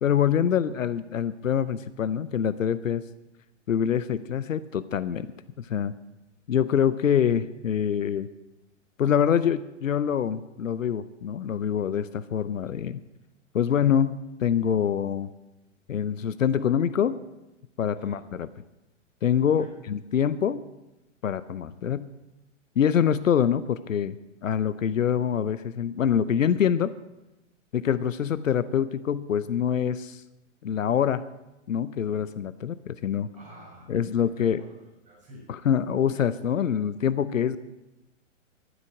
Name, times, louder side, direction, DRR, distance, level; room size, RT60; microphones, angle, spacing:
voice 1, 0.0-3.0 3.7-5.3 5.6-5.9 6.5-8.3 9.0-13.0 13.5-15.3 15.9-17.1 17.8-18.5 19.2-20.6 21.2-22.1 22.8-24.2 24.4-26.9 27.7-30.2 30.6-31.2 31.7-33.3 33.9-34.6 35.5-37.6, left 8 dB, 80° left, 15 dB, 0.7 m, -25 dB
voice 2, 18.0-18.3 19.6-19.7 33.3-34.7 35.0-35.5, right 1 dB, 20° right, -3 dB, 6.6 m, -48 dB
13.0 x 8.2 x 8.9 m, 0.98 s
figure-of-eight pair, 115°, 39 cm